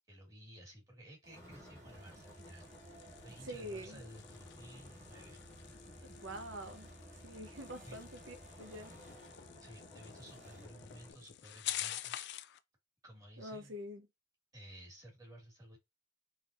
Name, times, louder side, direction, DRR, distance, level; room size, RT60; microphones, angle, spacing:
voice 1, 0.1-2.7 3.2-5.4 7.9-8.0 9.6-12.3 13.0-13.7 14.5-15.8, right 1 dB, 20° right, 2.0 m, -54 dB
sound 1, 1.2-10.7, right 2 dB, 40° right, 0.7 m, -59 dB
sound 2, 1.3-11.1, left 1 dB, 15° left, 1.2 m, -56 dB
sound 3, 1.9-12.6, left 13 dB, 60° left, 0.4 m, -48 dB
voice 2, 3.4-4.0 6.2-6.9 7.2-8.9 13.4-14.1, equal, 75° right, 0.9 m, -46 dB
4.0 x 3.5 x 2.6 m
head